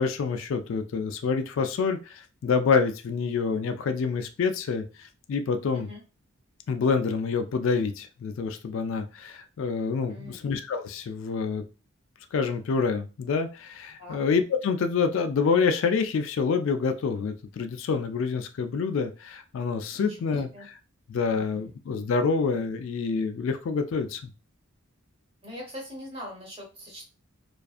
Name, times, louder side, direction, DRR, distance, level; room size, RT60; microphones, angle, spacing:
voice 1, 0.0-5.9 6.7-11.6 12.3-20.5 21.1-24.2, left 5 dB, 65° left, 8 dB, 0.3 m, -27 dB
voice 2, 10.1-10.4 14.0-14.2 19.9-20.2 20.5-20.6 21.3-21.7 25.4-27.1, equal, 25° right, -1 dB, 1.0 m, -42 dB
2.5 x 2.4 x 2.4 m, 0.32 s
head